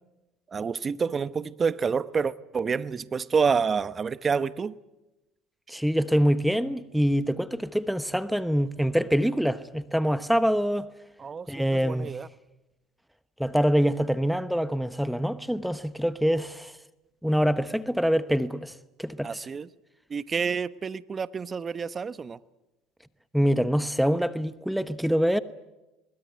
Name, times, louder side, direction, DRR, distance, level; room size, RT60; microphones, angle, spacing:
voice 1, 0.5-4.8 11.2-12.3 19.2-19.7 20.1-22.4, right 5 dB, 30° right, 0.9 m, -28 dB
voice 2, 5.7-10.9 11.5-12.1 13.4-16.7 17.2-18.7 19.0-19.5 23.3-25.4, equal, ahead, 1.0 m, -25 dB
23.0 x 20.5 x 9.5 m
supercardioid pair, 90°, 0 cm